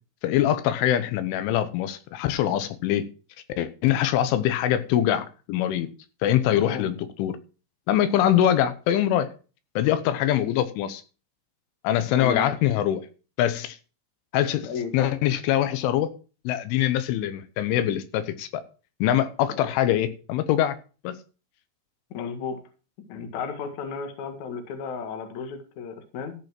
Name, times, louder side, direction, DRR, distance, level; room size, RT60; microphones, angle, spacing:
voice 1, 0.2-3.1 3.6-5.9 6.2-7.4 7.9-9.3 9.8-11.0 11.8-13.0 13.4-13.8 14.3-14.7 14.9-16.1 16.5-18.6 19.0-20.8 21.1-21.2, left 11 dB, 90° left, 3.5 m, -23 dB
voice 2, 6.6-6.9 12.2-12.5 14.6-15.1 19.6-19.7 22.1-22.6 23.1-26.3, left 6 dB, 55° left, 2.4 m, -33 dB
14.0 x 5.4 x 6.0 m
omnidirectional pair, 5.4 m